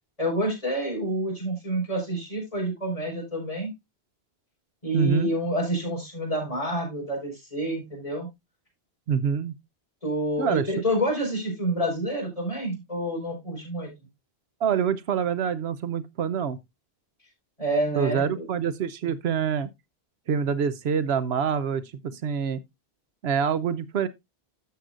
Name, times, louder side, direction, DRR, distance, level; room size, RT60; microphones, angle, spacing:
voice 1, 0.2-3.7 4.8-8.3 10.0-13.9 17.6-18.5, equal, 30° left, 5.0 m, -28 dB
voice 2, 4.9-5.3 9.1-9.5 10.4-10.7 14.6-16.6 18.0-19.7 20.3-22.6 23.2-24.1, right 7 dB, 75° right, 0.9 m, -26 dB
12.5 x 7.6 x 2.5 m
omnidirectional pair, 1.1 m